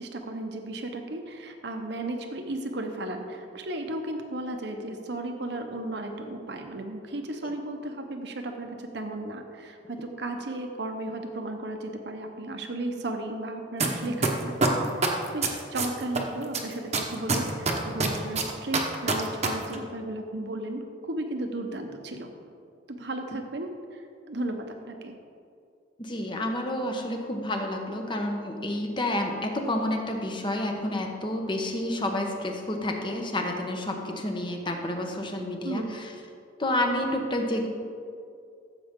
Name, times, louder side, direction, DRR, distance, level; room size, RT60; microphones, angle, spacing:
voice 1, 0.0-22.3 22.9-25.1 35.6-36.0, right 1 dB, 60° right, 4 dB, 1.0 m, -35 dB
sound 1, 13.8-13.9 14.2-16.2 16.5-19.5 19.7-19.8, right 4 dB, 35° right, 1.1 m, -24 dB
voice 2, 26.0-36.1 36.6-37.7, left 1 dB, 25° left, 3 dB, 1.1 m, -29 dB
15.0 x 7.6 x 3.8 m, 2.4 s
head